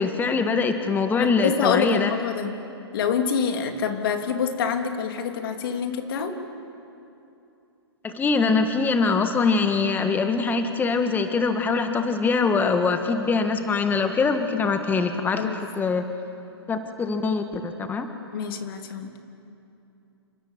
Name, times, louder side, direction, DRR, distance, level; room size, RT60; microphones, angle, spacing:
voice 1, 0.0-2.1 8.0-15.5 15.8-16.0 16.7-18.1, left 4 dB, 15° left, 7 dB, 1.5 m, -23 dB
voice 2, 1.1-2.6 2.9-6.4 15.4-15.6 18.3-19.1, left 6 dB, 55° left, 5 dB, 3.2 m, -26 dB
29.0 x 27.0 x 7.5 m, 2.7 s
hypercardioid pair, 120°, 14 cm